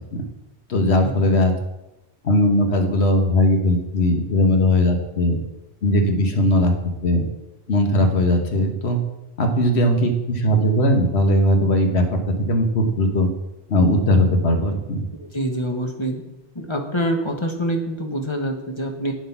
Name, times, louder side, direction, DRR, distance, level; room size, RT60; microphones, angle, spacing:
voice 1, 0.7-1.5 2.2-5.4 5.8-6.7 7.0-7.2 7.7-9.0 9.4-13.3 13.7-15.0, left 1 dB, 70° left, 4 dB, 1.7 m, -19 dB
voice 2, 15.2-16.2 16.5-19.1, right 1 dB, 25° left, 3 dB, 1.4 m, -25 dB
9.1 x 7.9 x 5.9 m, 0.95 s
omnidirectional pair, 1.1 m